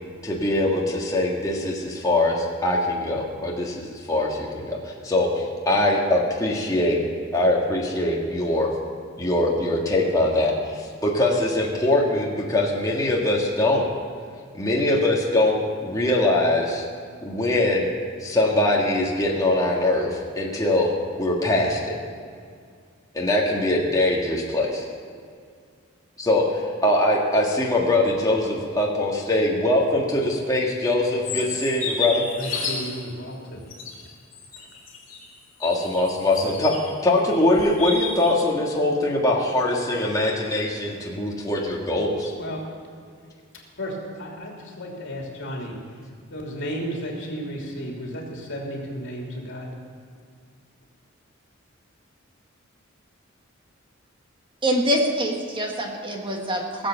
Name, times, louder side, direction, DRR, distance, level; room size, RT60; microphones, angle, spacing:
voice 1, 0.2-7.0 7.3-8.7 9.2-13.9 14.5-16.8 17.2-17.9 18.2-22.0 23.1-24.8 26.2-32.3 35.6-42.3, left 1 dB, 20° left, -3 dB, 1.7 m, -22 dB
sound 1, 31.2-33.0 33.7-36.9 37.3-38.3, left 4 dB, 45° left, 2.8 m, -31 dB
voice 2, 32.3-33.6 34.6-34.7 42.4-42.6 43.5-45.7 46.3-49.7, equal, 65° left, -1 dB, 3.1 m, -33 dB
voice 3, 54.6-56.9, equal, 25° right, 1 dB, 1.6 m, -25 dB
19.0 x 7.8 x 7.1 m, 2.2 s
head